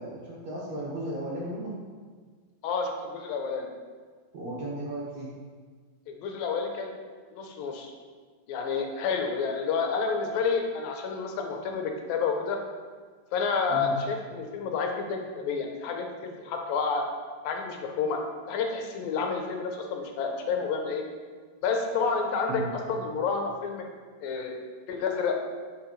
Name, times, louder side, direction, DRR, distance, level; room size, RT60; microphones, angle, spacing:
voice 1, 0.0-1.7 4.3-5.3 13.7-14.0 22.5-22.7, right 1 dB, 55° right, -5 dB, 2.2 m, -35 dB
voice 2, 2.6-3.7 6.1-6.9 7.3-7.9 8.5-12.6 13.3-16.1 16.4-17.0 17.4-18.2 18.5-21.0 21.6-22.6 22.9-23.9 24.2-24.5 24.9-25.4, left 5 dB, 80° left, 3 dB, 2.5 m, -29 dB
10.5 x 5.6 x 3.2 m, 1.6 s
omnidirectional pair, 4.1 m